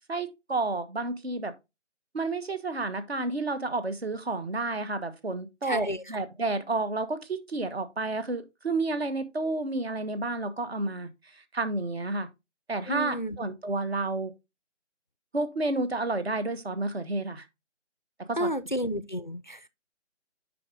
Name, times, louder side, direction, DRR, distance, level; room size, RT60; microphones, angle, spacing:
voice 1, 0.1-1.5 2.1-11.1 11.5-12.3 12.7-14.3 15.3-17.5 18.3-18.5, right 2 dB, 55° right, 1.3 m, -30 dB
voice 2, 5.6-6.0 12.9-13.4 18.4-19.7, equal, 40° left, 0.4 m, -31 dB
7.7 x 5.0 x 3.7 m
figure-of-eight pair, 160°, 36 cm